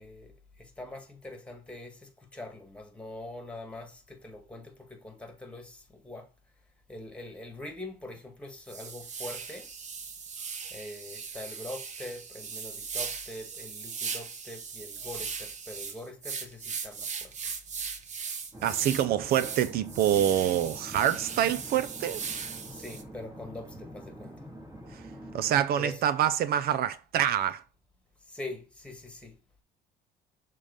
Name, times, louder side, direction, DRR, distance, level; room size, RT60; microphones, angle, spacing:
voice 1, 0.0-6.3 6.9-9.7 10.7-17.3 22.7-24.5 25.8-26.0 28.2-29.4, left 1 dB, 5° left, 1.9 m, -43 dB
sound 1, 8.1-8.2 8.7-23.0, right 6 dB, 45° right, 1.1 m, -38 dB
sound 2, 18.5-25.6, equal, 15° right, 2.3 m, -46 dB
voice 2, 18.6-22.2 24.9-25.0 25.3-27.6, right 10 dB, 65° right, 0.5 m, -26 dB
6.5 x 3.7 x 5.3 m
cardioid pair, 110°, 17 cm